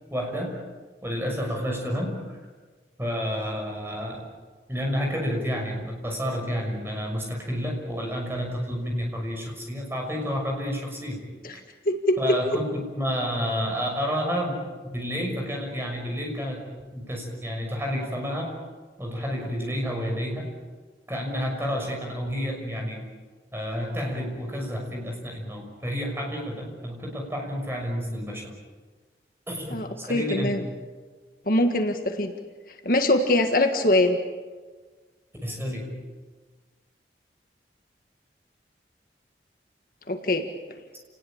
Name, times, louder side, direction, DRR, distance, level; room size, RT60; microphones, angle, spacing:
voice 1, 0.1-0.6 1.0-2.2 3.0-4.2 4.7-11.2 12.2-16.6 16.9-18.6 19.0-20.5 21.1-23.0 23.5-28.5 29.5-30.6 35.4-36.0, equal, 15° right, 0 dB, 6.2 m, -30 dB
voice 2, 11.8-12.4 29.7-30.6 31.5-32.3 32.8-34.2 40.1-40.5, left 1 dB, 50° left, 5 dB, 1.7 m, -23 dB
29.5 x 19.5 x 8.8 m, 1.4 s
head